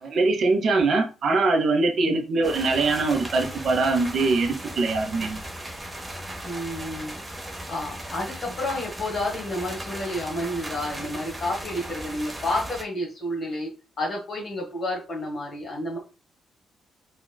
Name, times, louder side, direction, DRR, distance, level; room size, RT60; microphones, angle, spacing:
voice 1, 0.0-5.4, right 3 dB, 50° right, 4 dB, 0.6 m, -22 dB
sound 1, 2.4-12.8, right 1 dB, 15° right, 0.8 m, -37 dB
voice 2, 6.4-7.1 7.7-13.7 14.0-16.0, left 1 dB, 45° left, -2 dB, 1.3 m, -30 dB
3.8 x 2.2 x 2.2 m, 0.32 s
figure-of-eight pair, 40°, 0 cm